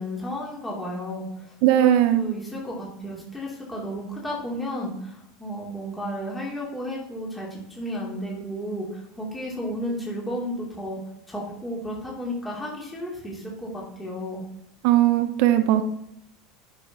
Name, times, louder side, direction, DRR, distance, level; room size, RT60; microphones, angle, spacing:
voice 1, 0.0-11.0 11.3-14.4, equal, 10° left, -4 dB, 2.5 m, -33 dB
voice 2, 1.6-2.3 14.8-15.8, right 13 dB, 60° right, 8 dB, 0.6 m, -19 dB
9.3 x 5.7 x 3.5 m, 0.75 s
hypercardioid pair, 85°, 0 cm